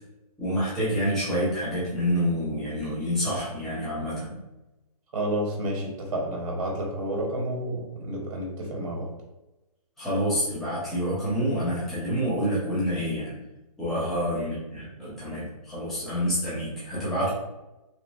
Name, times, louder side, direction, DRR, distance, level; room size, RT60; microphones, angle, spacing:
voice 1, 0.4-4.4 10.0-13.4 13.8-17.3, equal, ahead, -11 dB, 0.4 m, -28 dB
voice 2, 5.1-9.1 13.9-14.0, right 1 dB, 55° right, -1 dB, 0.9 m, -30 dB
3.0 x 2.5 x 2.2 m, 1.0 s
hypercardioid pair, 160°, 20 cm